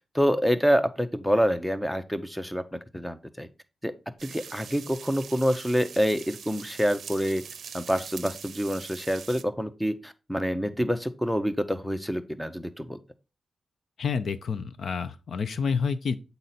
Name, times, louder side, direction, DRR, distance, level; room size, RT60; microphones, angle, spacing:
voice 1, 0.1-3.5 3.8-3.9 4.2-7.4 7.7-13.0, equal, ahead, 0.6 m, -27 dB
sound 1, 4.2-9.4, right 7 dB, 75° right, 0.5 m, -43 dB
voice 2, 14.0-16.2, left 5 dB, 60° left, 0.6 m, -28 dB
8.0 x 4.0 x 4.2 m
wide cardioid pair, 135°, 0 cm